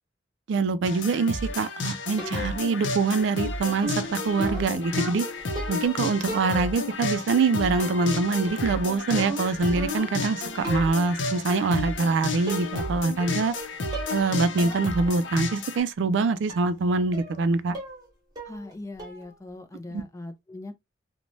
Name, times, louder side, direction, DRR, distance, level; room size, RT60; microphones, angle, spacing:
voice 1, 0.5-5.3 5.7-13.5 14.1-17.8 19.9-20.0, right 4 dB, 80° right, 0.4 m, -24 dB
sound 1, 0.8-15.8, left 3 dB, 85° left, 0.6 m, -32 dB
sound 2, 2.2-2.7 3.8-6.0 6.3-6.9 7.8-8.2 8.5-10.3 10.6-11.0 12.0-12.1 12.5-12.9 13.2-13.6 13.9-14.3 14.6-14.8 15.2-15.3 16.5-16.7 17.1-17.4 17.7-18.1 18.4-18.7 19.0-19.3, right 1 dB, 20° right, 1.0 m, -37 dB
voice 2, 18.5-20.8, left 2 dB, 15° left, 0.3 m, -40 dB
3.0 x 2.1 x 2.5 m
head